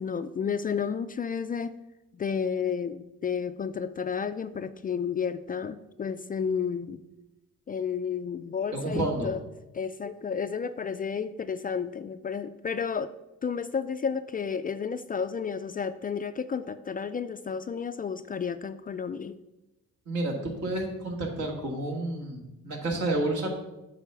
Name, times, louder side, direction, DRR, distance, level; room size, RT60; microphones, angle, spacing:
voice 1, 0.0-1.7 2.1-7.0 7.7-9.4 9.7-13.1 13.4-19.4, left 6 dB, 30° left, 11 dB, 0.3 m, -31 dB
voice 2, 8.7-9.3 20.1-23.5, right 2 dB, 70° right, 0 dB, 2.2 m, -30 dB
8.1 x 4.2 x 7.1 m, 0.98 s
cardioid pair, 90°, 30 cm